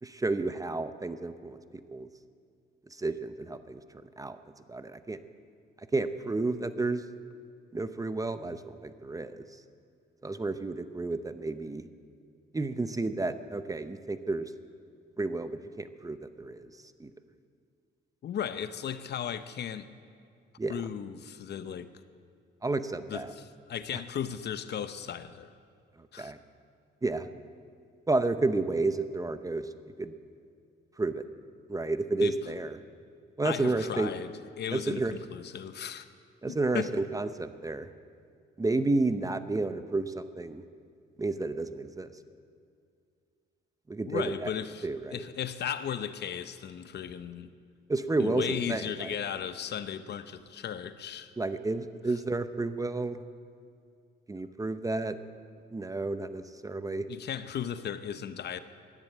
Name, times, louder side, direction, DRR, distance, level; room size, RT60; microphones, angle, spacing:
voice 1, 0.0-1.6 1.9-2.1 2.9-3.8 4.2-4.4 4.7-5.2 5.9-7.0 7.7-9.5 10.2-11.9 12.5-14.5 15.2-16.7 17.0-17.1 20.6-20.7 22.6-23.3 26.2-26.4 27.0-27.3 28.1-29.7 30.0-30.1 31.0-31.2 31.7-32.8 33.4-34.1 34.7-35.1 36.4-37.9 38.6-40.6 41.2-42.1 43.9-44.5 44.8-45.2 47.9-49.1 51.4-53.2 54.3-55.2 55.7-57.0, right 2 dB, 15° right, 11 dB, 0.7 m, -31 dB
voice 2, 18.2-19.9 20.7-21.9 23.1-25.5 26.1-26.3 32.2-32.4 33.4-36.1 36.5-37.0 44.0-47.5 48.2-51.3 57.1-58.6, left 8 dB, 60° left, 12 dB, 0.7 m, -36 dB
12.0 x 10.5 x 8.9 m, 2.3 s
cardioid pair, 90°, 20 cm